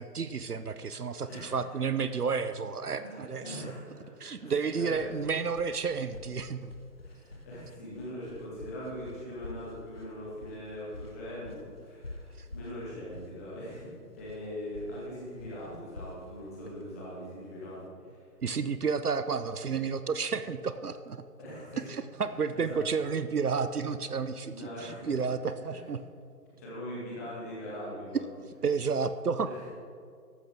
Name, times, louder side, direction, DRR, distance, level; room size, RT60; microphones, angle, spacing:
voice 1, 0.0-3.6 4.2-6.7 18.4-21.2 21.9-26.0 28.6-29.5, right 5 dB, 70° right, 12 dB, 0.7 m, -31 dB
voice 2, 1.2-1.5 3.0-4.0 4.4-5.3 7.0-18.2 21.4-21.9 22.2-22.3 22.6-22.8 24.5-25.2 25.7-25.8 26.6-28.3 29.4-29.6, equal, 10° left, -7 dB, 1.8 m, -41 dB
sound 1, 4.9-17.8, left 2 dB, 40° left, 0.6 m, -48 dB
14.5 x 12.5 x 3.5 m, 2.1 s
figure-of-eight pair, 155°, 48 cm